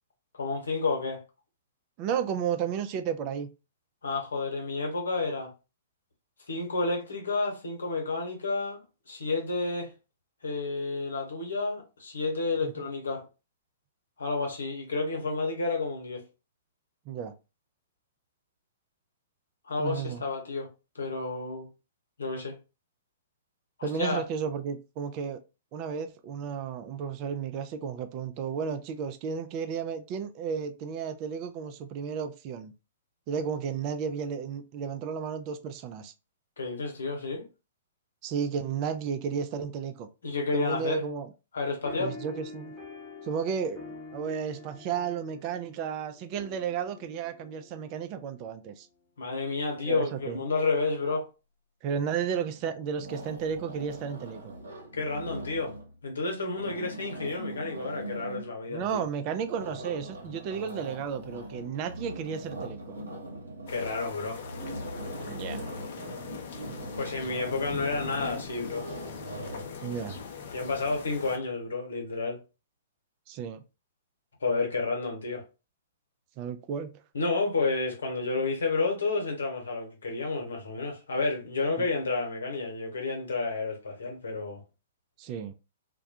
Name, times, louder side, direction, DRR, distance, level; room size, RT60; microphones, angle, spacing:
voice 1, 0.3-1.2 4.0-5.5 6.5-8.8 9.1-9.9 10.4-13.3 14.2-16.2 19.6-20.7 20.9-21.7 22.2-22.6 23.8-24.3 36.6-37.4 40.2-41.0 41.5-42.2 49.2-51.3 54.9-55.7 56.0-59.0 63.7-64.4 67.0-68.9 70.5-72.4 74.4-75.4 77.1-84.6, left 3 dB, 70° left, 0.9 m, -30 dB
voice 2, 2.0-3.5 12.6-12.7 17.1-17.3 19.8-20.2 23.8-25.4 25.7-32.7 33.3-36.1 38.2-40.1 40.5-41.3 42.0-42.7 43.2-48.9 49.8-50.4 51.8-54.4 58.7-63.0 65.3-65.6 69.8-70.2 73.3-73.6 76.4-77.0 85.2-85.5, right 7 dB, 35° right, 0.4 m, -33 dB
sound 1, 41.8-48.7, left 3 dB, 10° left, 1.0 m, -47 dB
sound 2, 52.2-52.6 52.9-55.9 56.4-58.5 59.4-69.7, right 1 dB, 75° right, 0.9 m, -41 dB
sound 3, 63.7-71.4, left 6 dB, 55° left, 0.5 m, -41 dB
2.2 x 2.2 x 2.7 m
figure-of-eight pair, 115°, 0 cm